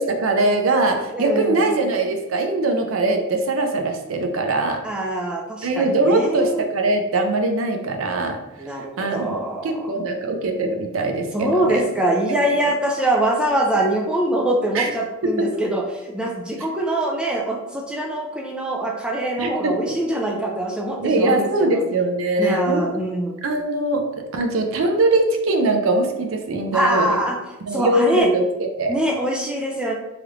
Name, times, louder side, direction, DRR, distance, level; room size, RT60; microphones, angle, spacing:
voice 1, 0.0-4.8 5.6-8.4 9.0-11.8 12.6-12.7 14.7-14.9 15.2-15.5 19.4-20.0 21.0-22.9 23.4-27.2 27.6-28.9, right 2 dB, 85° right, 5 dB, 0.5 m, -21 dB
voice 2, 1.1-1.8 4.8-6.6 8.6-9.9 11.3-21.8 22.4-23.4 26.7-27.4 27.7-28.3 28.9-30.0, right 1 dB, 5° right, -1 dB, 0.3 m, -23 dB
3.2 x 2.4 x 3.0 m, 1.0 s
head